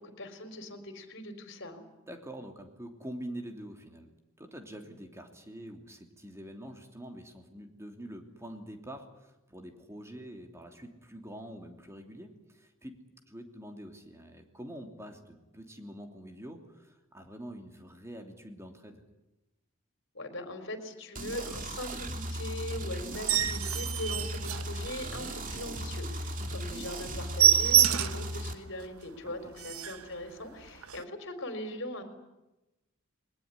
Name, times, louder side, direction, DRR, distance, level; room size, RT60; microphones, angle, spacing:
voice 1, 0.0-1.8 20.1-32.0, left 1 dB, 60° left, 8 dB, 4.2 m, -40 dB
voice 2, 2.1-4.1 4.4-13.0 13.3-19.0 26.4-26.6 29.2-29.5, right 1 dB, 15° right, 4 dB, 3.0 m, -45 dB
sound 1, 21.1-28.5, equal, 40° right, 2.6 m, -37 dB
sound 2, 23.1-25.3 25.7-25.8 26.2-26.3 26.6-26.7 27.0-28.3 28.8-28.9 29.3-29.4 29.6-30.1 30.8-31.0, right 10 dB, 85° right, 1.1 m, -26 dB
21.5 x 19.5 x 9.8 m, 0.98 s
head